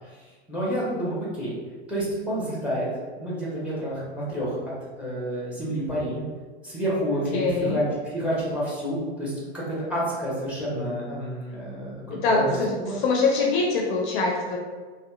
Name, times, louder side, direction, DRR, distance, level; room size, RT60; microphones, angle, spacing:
voice 1, 0.5-1.6 1.9-2.9 3.1-4.6 5.0-6.2 6.6-7.8 8.1-12.4 12.8-13.0, equal, 5° right, -7 dB, 0.9 m, -29 dB
voice 2, 7.3-7.8 12.1-14.6, left 3 dB, 50° left, -1 dB, 0.5 m, -24 dB
2.7 x 2.2 x 2.3 m, 1.4 s
hypercardioid pair, 95°, 33 cm